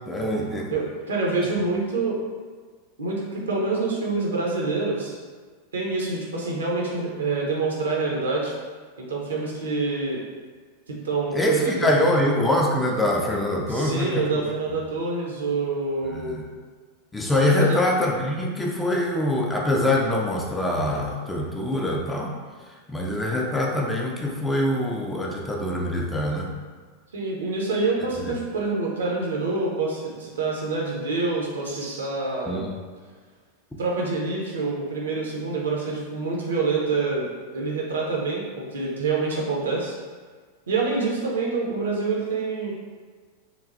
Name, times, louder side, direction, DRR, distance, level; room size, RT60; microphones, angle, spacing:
voice 1, 0.1-0.8 11.3-14.2 16.1-16.4 17.1-22.4 22.9-26.5 28.2-28.3 32.5-32.7, left 1 dB, 10° left, -1 dB, 0.3 m, -24 dB
voice 2, 0.7-2.2 3.0-5.2 5.7-8.5 9.0-10.2 11.0-11.7 13.7-16.3 17.5-17.8 27.1-32.6 33.8-37.3 37.5-39.9 40.7-42.7, right 3 dB, 65° right, -3 dB, 0.6 m, -26 dB
3.0 x 2.2 x 2.5 m, 1.5 s
figure-of-eight pair, 90°, 0 cm